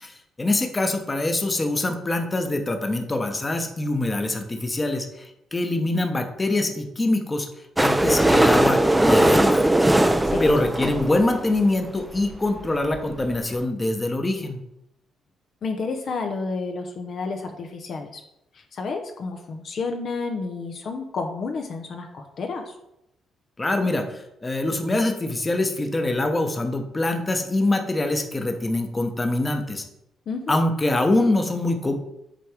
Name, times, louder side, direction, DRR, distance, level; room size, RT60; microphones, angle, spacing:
voice 1, 0.0-7.5 7.8-9.7 10.1-14.6 23.6-29.8 30.5-31.9, left 2 dB, 25° left, 5 dB, 1.0 m, -24 dB
sound 1, 7.8-11.6 12.3-12.4 12.6-12.7 12.9-13.0 13.3-13.4, right 1 dB, 10° right, 0.5 m, -19 dB
voice 2, 15.6-18.2 18.5-22.8 30.3-30.6, left 4 dB, 55° left, 4 dB, 0.7 m, -30 dB
7.6 x 3.4 x 5.0 m, 0.83 s
cardioid pair, 90°, 0 cm